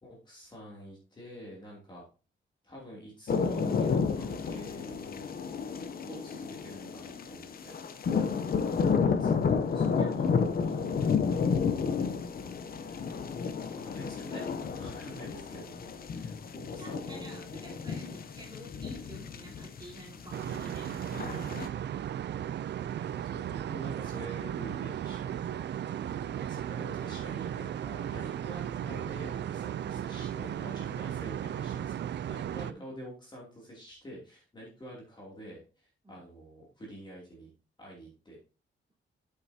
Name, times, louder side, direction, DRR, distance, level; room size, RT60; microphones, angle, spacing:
voice 1, 0.0-2.0 2.6-5.3 6.0-7.7 9.2-10.3 10.6-11.1 12.8-13.3 13.8-14.5 14.7-17.4 23.2-25.6 25.9-37.5 37.8-38.4, equal, 20° left, -4 dB, 2.7 m, -47 dB
sound 1, 3.3-21.7, left 5 dB, 45° left, 0.7 m, -31 dB
voice 2, 10.0-10.4 10.8-11.1 16.7-21.8 32.5-32.9 36.0-36.2, right 1 dB, 20° right, -4 dB, 3.8 m, -50 dB
sound 2, 20.3-32.7, right 10 dB, 60° right, 0.4 m, -35 dB
8.3 x 7.9 x 2.8 m, 0.34 s
wide cardioid pair, 175°, 21 cm